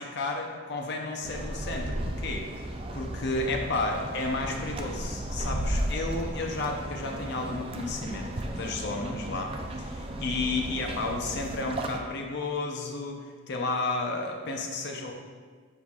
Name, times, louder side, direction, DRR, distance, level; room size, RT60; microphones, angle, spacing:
voice 1, 0.0-2.5 2.9-13.2 13.5-15.1, left 3 dB, 55° left, 2 dB, 0.6 m, -32 dB
sound 1, 1.2-12.0, right 1 dB, 25° right, 0.4 m, -34 dB
8.2 x 5.5 x 2.4 m, 1.5 s
head